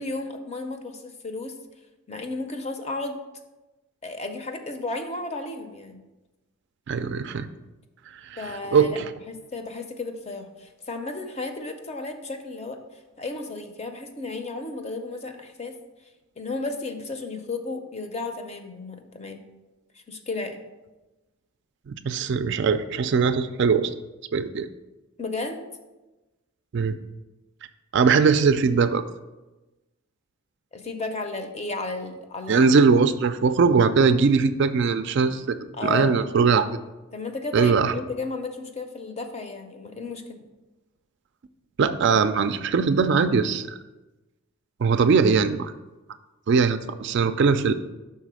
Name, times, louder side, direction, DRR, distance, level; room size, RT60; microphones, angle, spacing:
voice 1, 0.0-1.5 2.1-3.2 4.0-6.0 8.4-9.0 9.3-12.8 13.2-15.8 16.4-19.4 19.9-20.6 25.2-25.6 30.7-32.6 35.7-36.2 37.1-40.4, left 3 dB, 30° left, 6 dB, 0.6 m, -33 dB
voice 2, 6.9-7.5 8.3-8.4 8.7-9.1 21.9-23.9 24.3-24.7 26.7-27.0 27.9-29.0 32.5-36.7 37.5-37.9 41.8-43.8 44.8-45.7 46.5-47.7, right 5 dB, 55° right, 10 dB, 0.3 m, -20 dB
5.7 x 4.1 x 6.1 m, 1.1 s
head